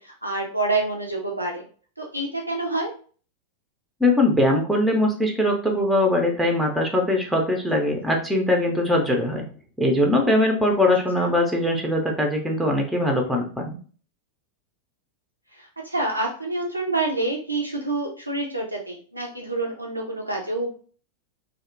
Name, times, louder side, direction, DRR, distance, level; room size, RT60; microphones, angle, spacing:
voice 1, 0.0-1.6 2.0-2.9 7.7-7.8 11.2-11.3 15.5-20.7, right 2 dB, 85° right, 0 dB, 0.4 m, -27 dB
voice 2, 4.0-9.4 9.8-13.8, left 1 dB, 5° right, 2 dB, 0.4 m, -21 dB
2.6 x 2.1 x 2.5 m, 0.42 s
figure-of-eight pair, 90°, 0 cm